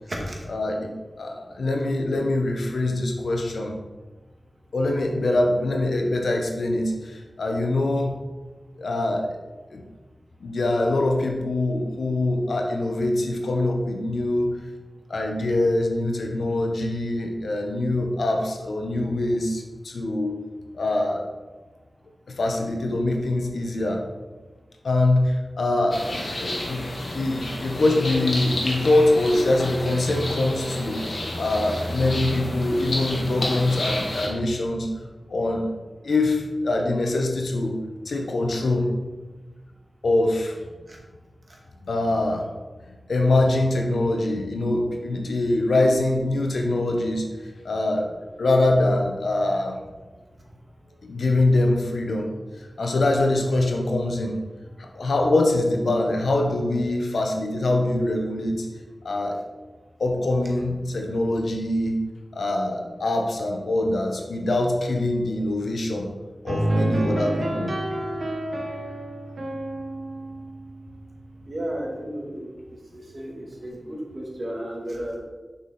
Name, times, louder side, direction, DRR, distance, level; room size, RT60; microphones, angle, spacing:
voice 1, 0.5-0.9 1.2-3.7 4.7-8.2 8.8-9.4 9.7-9.8 10.4-14.5 15.1-20.4 20.7-21.3 22.3-24.0 24.8-26.0 26.4-26.8 27.1-31.0 31.4-34.9 35.3-35.7 36.0-37.8 38.0-38.9 40.0-40.5 41.8-42.5 43.1-47.2 47.6-48.1 48.4-49.8 51.0-52.3 52.8-54.4 54.8-58.7 59.0-59.4 60.0-62.0 62.3-66.1 66.4-67.7, left 2 dB, 90° left, 2 dB, 1.0 m, -23 dB
sound 1, 25.9-34.3, left 1 dB, 75° left, 1.5 m, -30 dB
Melancholic piano music, 66.5-71.4, right 1 dB, 70° right, 1.2 m, -28 dB
voice 2, 71.5-72.5 72.9-75.2, right 1 dB, 55° right, -1 dB, 2.0 m, -33 dB
6.5 x 5.6 x 4.3 m, 1.2 s
cardioid pair, 45°, 0 cm